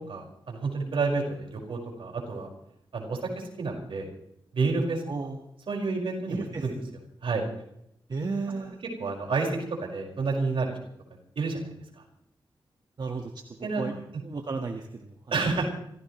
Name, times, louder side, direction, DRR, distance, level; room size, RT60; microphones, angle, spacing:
voice 1, 0.0-2.5 2.9-4.1 4.5-5.0 5.7-6.7 7.2-7.4 9.0-10.8 11.4-11.7 13.6-13.8 15.3-15.6, right 4 dB, 75° right, 0 dB, 5.4 m, -29 dB
voice 2, 5.1-5.4 6.3-6.7 8.1-8.8 13.0-13.3 13.8-13.9 14.2-15.5, right 4 dB, 50° right, 3 dB, 1.6 m, -33 dB
26.0 x 16.0 x 3.2 m, 0.75 s
cardioid pair, 75°, 9 cm